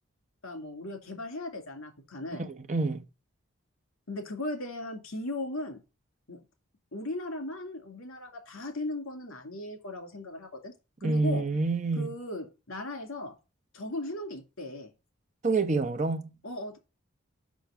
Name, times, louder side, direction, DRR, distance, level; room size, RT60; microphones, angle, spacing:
voice 1, 0.4-2.5 4.1-5.8 6.3-6.4 6.9-10.7 11.0-11.4 12.0-13.3 13.7-14.9 16.4-16.8, left 1 dB, 90° left, 2.3 m, -37 dB
voice 2, 2.3-3.0 11.0-12.1 15.4-16.3, right 3 dB, 35° right, 0.8 m, -28 dB
6.3 x 5.9 x 5.6 m
head